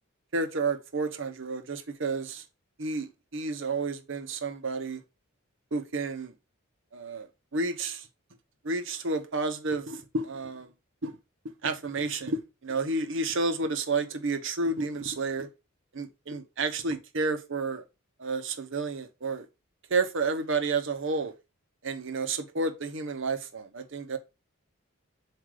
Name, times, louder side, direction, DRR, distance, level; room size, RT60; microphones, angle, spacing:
voice 1, 0.3-2.4 2.8-5.0 5.7-6.3 6.9-8.1 8.6-10.7 11.0-11.2 11.6-15.5 15.9-17.8 18.2-19.5 19.9-21.3 21.8-24.2, right 3 dB, 65° right, 0.9 m, -31 dB
7.5 x 2.6 x 4.8 m
head